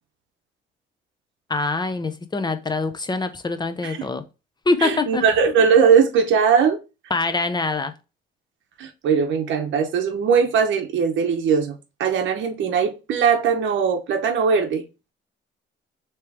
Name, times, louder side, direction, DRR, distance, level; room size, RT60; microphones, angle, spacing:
voice 1, 1.5-4.2 4.7-5.2 7.1-7.9, left 3 dB, 20° left, 0.6 m, -24 dB
voice 2, 4.8-6.8 8.8-14.8, right 6 dB, 70° right, 0.7 m, -20 dB
3.3 x 2.9 x 4.7 m
cardioid pair, 90°, 20 cm